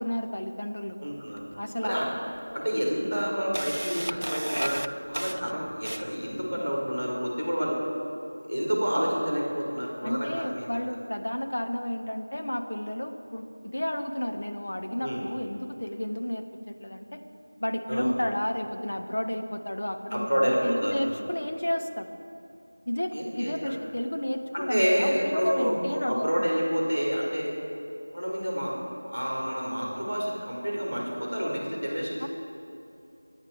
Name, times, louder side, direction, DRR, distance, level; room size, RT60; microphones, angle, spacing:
voice 1, 0.0-1.0 1.5-2.0 10.0-17.2 17.6-22.1 22.9-26.5 32.2-32.3, left 1 dB, 40° left, 4 dB, 1.0 m, -32 dB
voice 2, 1.0-1.4 1.8-2.1 2.5-7.8 8.5-10.8 15.0-15.2 17.9-18.1 20.1-21.1 23.1-23.7 24.5-27.5 28.1-28.7 29.0-32.2, equal, 5° left, -20 dB, 3.8 m, -28 dB
Camera, 1.4-1.5 2.3-2.4 2.9-6.3, right 1 dB, 70° right, 0.5 m, -34 dB
25.5 x 9.4 x 4.9 m, 2.7 s
figure-of-eight pair, 180°, 0 cm